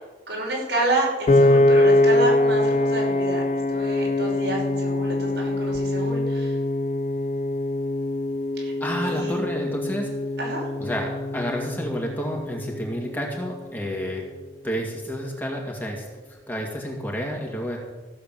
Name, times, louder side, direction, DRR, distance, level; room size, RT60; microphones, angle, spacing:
voice 1, 0.3-3.4 3.7-6.6 8.6-8.7 9.0-9.4 10.4-10.7, right 2 dB, 85° right, -3 dB, 5.4 m, -29 dB
Piano, 1.3-13.5, left 2 dB, 40° left, 0.5 m, -23 dB
voice 2, 8.8-10.1 10.8-14.3 14.6-17.8, equal, 10° left, -1 dB, 2.2 m, -30 dB
15.0 x 7.5 x 7.5 m, 1.2 s
head